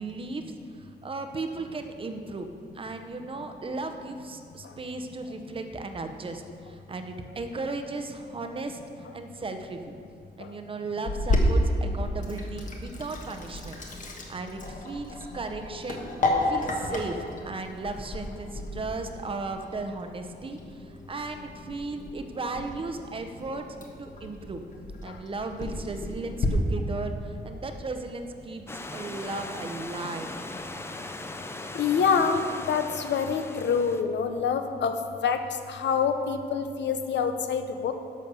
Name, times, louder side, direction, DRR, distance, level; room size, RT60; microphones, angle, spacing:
voice 1, 0.0-2.5 2.7-9.9 10.4-16.1 16.4-24.6 25.0-28.7 28.9-30.5, right 3 dB, 30° right, 6 dB, 0.7 m, -36 dB
Sink (filling or washing), 11.1-26.5, left 1 dB, 45° left, 1.3 m, -32 dB
Stream / Liquid, 28.7-34.0, left 2 dB, 15° left, 0.4 m, -39 dB
voice 2, 31.7-34.9 35.2-35.4 35.7-37.9, left 6 dB, 80° left, 7 dB, 0.8 m, -26 dB
11.0 x 6.3 x 6.8 m, 2.4 s
wide cardioid pair, 180°, 18 cm